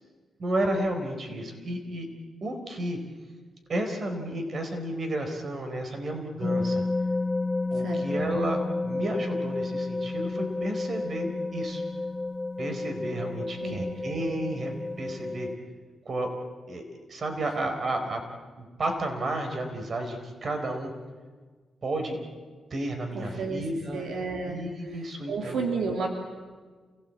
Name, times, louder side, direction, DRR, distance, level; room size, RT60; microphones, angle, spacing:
voice 1, 0.4-2.1 2.4-3.0 3.7-6.8 7.7-11.8 12.6-15.5 16.0-16.3 16.7-16.8 17.1-18.2 18.6-20.9 21.8-22.2 22.7-24.1 24.5-25.6, right 1 dB, 50° right, 5 dB, 4.3 m, -32 dB
sound 1, 6.4-15.6, left 2 dB, 35° left, 1.2 m, -31 dB
voice 2, 7.7-8.1 13.6-13.9 23.1-23.6 23.9-24.6 24.9-26.1, right 4 dB, 80° right, 1 dB, 2.8 m, -32 dB
28.5 x 17.0 x 8.7 m, 1.5 s
cardioid pair, 85°, 0 cm